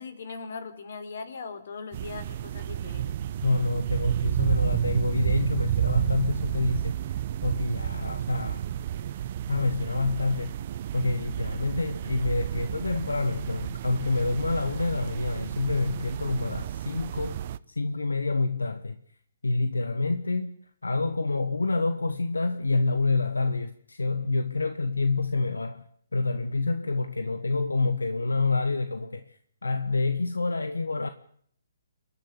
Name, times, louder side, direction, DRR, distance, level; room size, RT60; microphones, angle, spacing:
voice 1, 0.0-3.1, left 4 dB, 60° left, 4.2 m, -39 dB
sound 1, 1.9-17.6, right 11 dB, 45° right, 0.9 m, -31 dB
voice 2, 3.4-8.6 9.1-9.2 9.5-10.6 10.9-19.0 19.4-20.5 20.8-25.8 26.1-29.3 29.6-31.1, left 3 dB, 85° left, 1.5 m, -27 dB
29.0 x 11.5 x 8.4 m
figure-of-eight pair, 135°, 0 cm